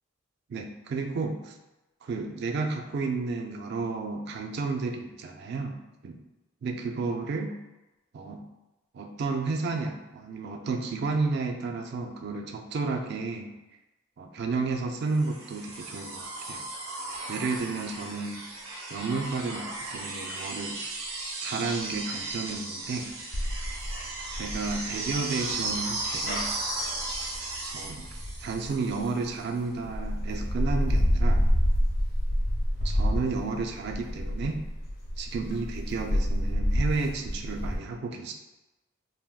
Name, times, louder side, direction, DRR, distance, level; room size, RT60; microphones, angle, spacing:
voice 1, 0.5-1.5 2.0-6.2 6.6-7.6 8.1-8.4 8.9-13.6 14.2-16.6 17.3-18.5 18.9-20.8 21.4-23.1 24.3-26.5 27.7-28.1 28.4-31.4 32.8-34.6 35.2-38.3, right 4 dB, 55° right, 4 dB, 0.3 m, -32 dB
sound 1, 15.2-29.2 30.6-30.7, right 2 dB, 85° right, 0.6 m, -36 dB
sound 2, 23.3-29.3 29.8-37.8, equal, 45° left, 0.7 m, -28 dB
3.4 x 2.2 x 2.3 m, 1.0 s
head